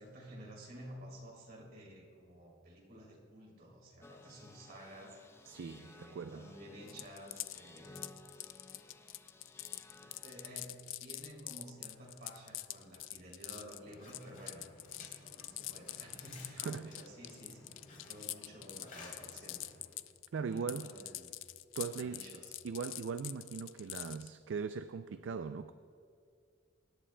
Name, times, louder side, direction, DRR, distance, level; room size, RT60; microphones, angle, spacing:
voice 1, 0.0-5.2 5.6-8.0 10.0-14.7 15.2-19.7 20.3-21.3 21.8-22.5, equal, 55° right, 3.0 m, -52 dB
sound 1, 4.0-10.8, left 2 dB, 15° left, 0.5 m, -57 dB
voice 2, 5.5-6.5 16.6-17.0 20.3-20.9 21.8-22.3 22.6-25.7, right 5 dB, 70° right, 0.4 m, -40 dB
sound 2, 6.9-20.3 20.5-24.3, left 15 dB, 85° left, 0.4 m, -44 dB
sound 3, 13.8-20.0, left 2 dB, 45° left, 3.1 m, -56 dB
24.5 x 11.0 x 2.2 m
head